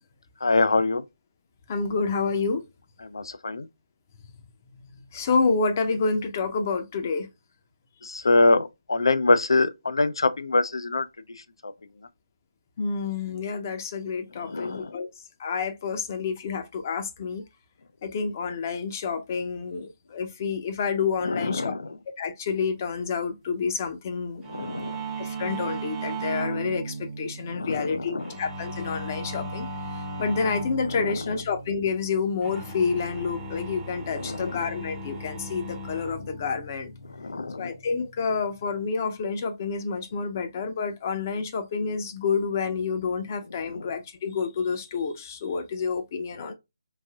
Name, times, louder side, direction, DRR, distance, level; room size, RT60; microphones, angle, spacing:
voice 1, 0.4-1.0 3.0-3.7 8.0-11.1 11.4-11.7 14.4-15.0 21.2-22.0 24.4-25.0 27.5-28.4 31.0-31.2 34.1-34.6 37.0-37.8 43.7-43.9 46.4-46.5, left 3 dB, 80° left, 0.5 m, -25 dB
voice 2, 1.7-2.6 5.1-7.3 12.8-15.1 15.4-17.4 18.0-21.7 22.2-24.4 25.2-29.7 30.2-36.9 37.6-46.5, left 5 dB, 35° left, 0.5 m, -28 dB
sound 1, 24.4-38.9, right 2 dB, 10° right, 0.6 m, -37 dB
3.2 x 2.6 x 2.2 m
figure-of-eight pair, 155°, 3 cm